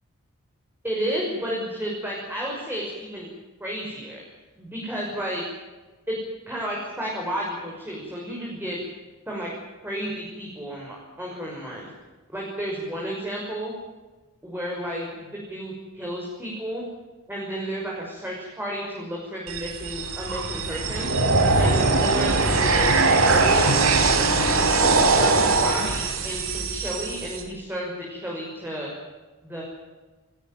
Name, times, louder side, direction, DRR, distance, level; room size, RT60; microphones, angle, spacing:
voice 1, 0.8-3.3 3.6-4.2 4.6-5.4 6.1-6.2 6.5-8.8 9.3-9.5 9.8-11.9 12.3-13.7 14.4-16.8 17.3-21.1 21.6-23.7 24.2-24.5 24.8-28.9 29.4-29.6, equal, 10° right, -3 dB, 5.9 m, -32 dB
sound 1, 19.5-27.4, right 3 dB, 70° right, 4.1 m, -21 dB
29.0 x 14.0 x 9.2 m, 1.2 s
head